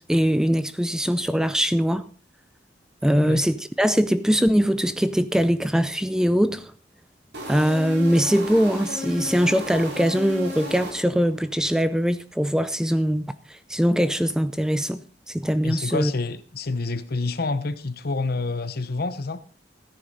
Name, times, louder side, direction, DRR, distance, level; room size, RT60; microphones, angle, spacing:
voice 1, 0.0-2.1 3.0-6.7 7.5-13.2 13.7-15.0 15.3-16.1, equal, 5° right, 0.5 m, -22 dB
sound 1, 7.3-11.4, left 1 dB, 65° right, 3.3 m, -34 dB
voice 2, 15.6-19.4, left 3 dB, 55° left, 0.9 m, -28 dB
14.0 x 9.9 x 4.1 m
head